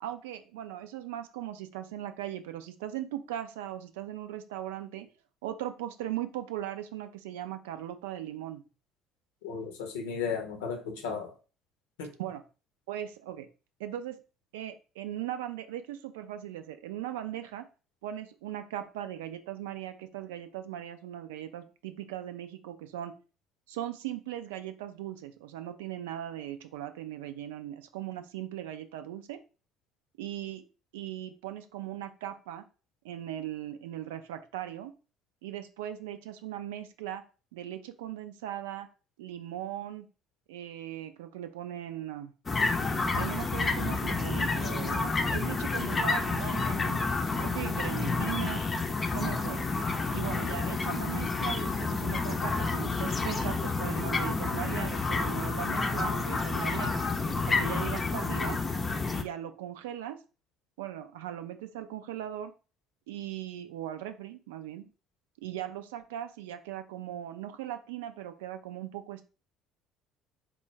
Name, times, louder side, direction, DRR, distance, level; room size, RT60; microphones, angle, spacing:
voice 1, 0.0-5.1 5.4-8.6 12.2-12.4 12.9-13.5 13.8-14.2 14.5-17.6 18.0-23.1 23.7-29.4 30.2-30.6 30.9-32.6 33.0-34.9 35.4-37.2 37.5-38.9 39.2-40.1 40.5-42.3 43.1-47.0 47.4-48.6 49.1-49.7 50.1-56.9 57.3-58.6 59.1-60.2 60.8-62.5 63.1-64.9 65.4-69.2, right 12 dB, 70° right, 9 dB, 0.4 m, -39 dB
voice 2, 9.4-11.3 12.0-12.1, left 6 dB, 70° left, 4 dB, 0.7 m, -35 dB
sound 1, 42.5-59.2, left 3 dB, 30° left, 0.6 m, -29 dB
4.4 x 2.2 x 3.3 m, 0.34 s
figure-of-eight pair, 55°, 0 cm